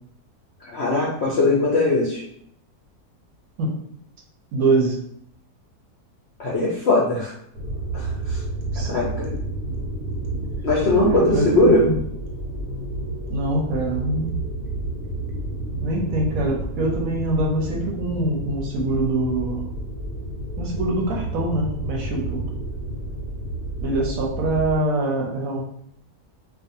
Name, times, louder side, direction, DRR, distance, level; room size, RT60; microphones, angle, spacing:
voice 1, 0.6-2.2 6.4-7.3 7.9-8.4 8.9-9.3 10.6-11.8, left 2 dB, 65° left, -5 dB, 0.6 m, -20 dB
voice 2, 4.5-5.1 8.7-9.0 11.0-12.0 13.3-14.4 15.8-19.7 20.6-22.4 23.8-25.6, right 2 dB, 70° right, -1 dB, 0.9 m, -24 dB
sound 1, 7.5-24.8, right 1 dB, 90° right, 1.2 m, -30 dB
2.5 x 2.3 x 2.6 m, 0.69 s
omnidirectional pair, 1.6 m